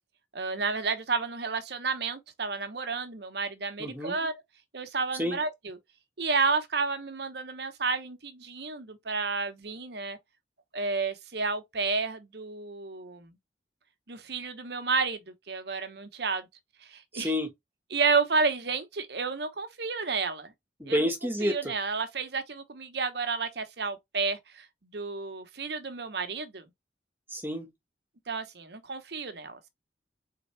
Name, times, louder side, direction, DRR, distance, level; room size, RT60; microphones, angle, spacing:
voice 1, 0.3-4.4 4.7-5.8 6.2-10.2 10.7-13.3 14.1-16.5 16.9-17.3 17.9-20.5 20.9-21.1 21.4-24.7 24.9-26.6 28.3-29.7, right 4 dB, 60° right, 0.9 m, -31 dB
voice 2, 3.8-4.1 5.2-5.4 17.1-17.5 20.8-21.7 27.3-27.7, equal, 10° right, 1.3 m, -29 dB
4.3 x 3.8 x 3.1 m
head